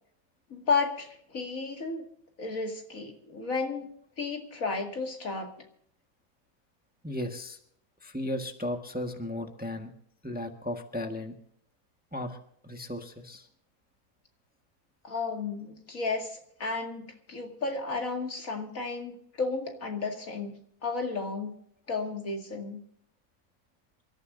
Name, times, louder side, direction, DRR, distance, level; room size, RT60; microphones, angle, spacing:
voice 1, 0.5-2.1 2.4-3.9 4.2-5.5 15.0-21.5 21.9-22.8, left 4 dB, 60° left, 3 dB, 2.6 m, -33 dB
voice 2, 7.0-7.6 8.0-9.9 10.2-11.3 12.1-12.4 12.6-13.5, left 1 dB, 5° right, 4 dB, 1.3 m, -35 dB
28.0 x 14.0 x 2.6 m, 0.67 s
omnidirectional pair, 1.6 m